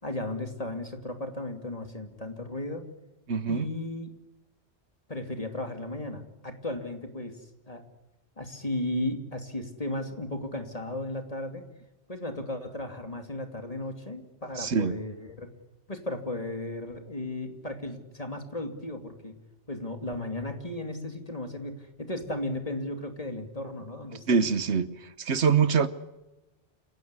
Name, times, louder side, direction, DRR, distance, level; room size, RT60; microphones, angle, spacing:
voice 1, 0.0-2.9 3.5-4.1 5.1-7.4 7.7-7.9 8.4-11.7 12.1-15.5 15.9-19.3 19.7-24.4, left 1 dB, 35° left, 2.8 m, -35 dB
voice 2, 3.3-3.7 14.6-14.9 24.3-24.9 25.2-25.9, right 6 dB, 80° right, 1.5 m, -24 dB
28.5 x 17.0 x 9.7 m
omnidirectional pair, 1.1 m